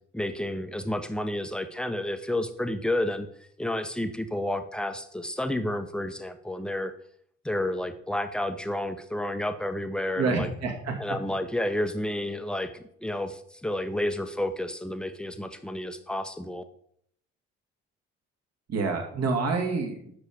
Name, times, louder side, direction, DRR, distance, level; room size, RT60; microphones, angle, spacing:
voice 1, 0.1-3.3 3.6-6.9 7.4-10.5 11.0-16.6, left 1 dB, ahead, 9 dB, 1.0 m, -30 dB
voice 2, 10.2-10.9 18.7-20.1, right 4 dB, 45° right, 3 dB, 2.3 m, -27 dB
9.6 x 6.9 x 5.1 m, 0.69 s
figure-of-eight pair, 45°, 35 cm